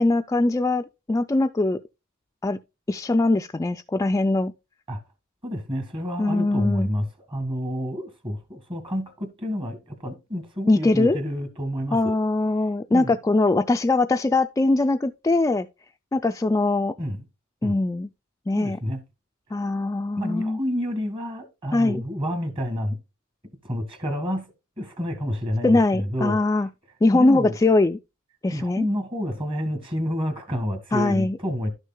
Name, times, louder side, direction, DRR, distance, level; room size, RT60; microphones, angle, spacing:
voice 1, 0.0-1.8 2.4-2.6 2.9-4.5 6.2-6.9 10.7-11.2 11.9-15.7 16.1-16.9 17.6-18.1 18.5-18.8 19.5-20.6 21.7-22.0 25.6-26.7 27.0-28.0 28.4-28.9 30.9-31.4, left 2 dB, 15° left, 0.3 m, -21 dB
voice 2, 5.4-12.1 12.9-13.1 17.0-17.2 17.6-17.8 18.6-19.0 20.2-23.0 23.6-26.4 27.1-27.6 28.5-31.7, equal, 25° right, 1.7 m, -29 dB
12.0 x 6.4 x 2.2 m
head